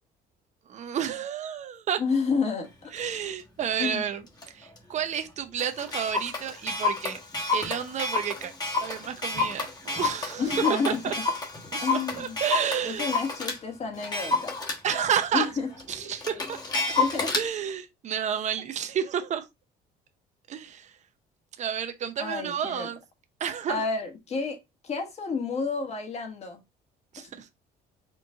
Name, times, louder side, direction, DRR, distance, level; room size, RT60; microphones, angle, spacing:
voice 1, 0.7-2.0 2.9-4.2 4.5-7.2 7.5-8.5 8.8-11.1 11.7-13.1 14.8-15.5 15.9-16.6 17.3-19.5 20.5-20.9 21.6-23.0 23.4-23.8 27.1-27.5, right 8 dB, 45° right, 0.7 m, -30 dB
voice 2, 2.0-2.9 3.8-4.1 10.4-11.1 11.8-12.4 12.8-14.6 15.3-15.7 17.0-17.3 22.2-22.9 23.7-24.6 24.8-26.6 27.2-27.3, left 5 dB, 40° left, 1.4 m, -30 dB
Clock, 3.0-3.1 3.6-3.8 4.4-4.5 4.8-4.9 5.2-5.3 5.6-13.6 14.0-17.5, left 3 dB, 25° left, 1.2 m, -30 dB
4.5 x 2.5 x 3.7 m
cardioid pair, 110°, 17 cm